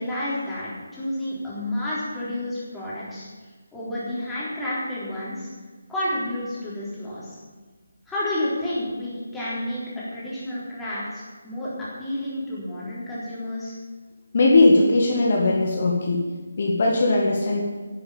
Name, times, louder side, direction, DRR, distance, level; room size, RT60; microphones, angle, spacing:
voice 1, 0.0-3.3 3.7-5.5 5.9-7.4 8.1-11.7 12.0-13.7, left 1 dB, 5° left, -10 dB, 3.7 m, -30 dB
voice 2, 14.3-16.2 16.6-17.6, left 2 dB, 45° left, -1 dB, 1.9 m, -19 dB
11.0 x 7.9 x 8.6 m, 1.4 s
figure-of-eight pair, 150°, 0 cm